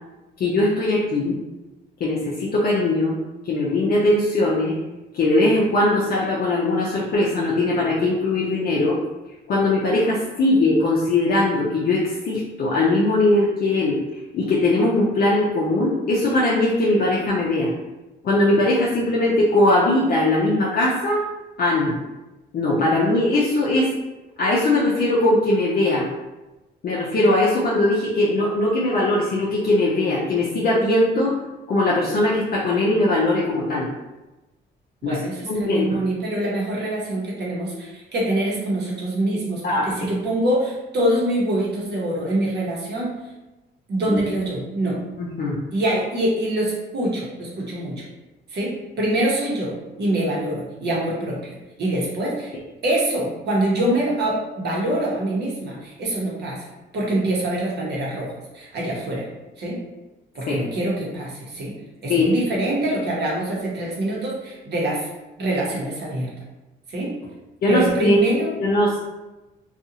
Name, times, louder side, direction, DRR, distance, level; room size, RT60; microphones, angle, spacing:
voice 1, 0.4-1.4 2.0-3.2 3.4-4.8 5.1-9.0 9.5-14.0 14.3-17.7 18.2-21.2 21.6-21.9 22.5-23.9 24.4-26.1 26.8-31.3 31.7-33.9 35.0-35.2 35.5-36.0 39.6-39.9 44.1-44.2 45.2-45.6 60.5-60.6 62.1-62.3 67.6-68.2 68.6-69.0, left 2 dB, 50° left, -5 dB, 0.5 m, -20 dB
voice 2, 35.0-43.2 43.9-45.0 45.7-48.1 48.5-52.5 52.8-59.3 59.6-59.8 60.3-61.8 62.0-65.1 65.4-66.3 66.9-67.1 67.7-68.5, right 1 dB, 60° right, -3 dB, 1.0 m, -25 dB
2.5 x 2.4 x 2.8 m, 1.1 s
cardioid pair, 90°, 20 cm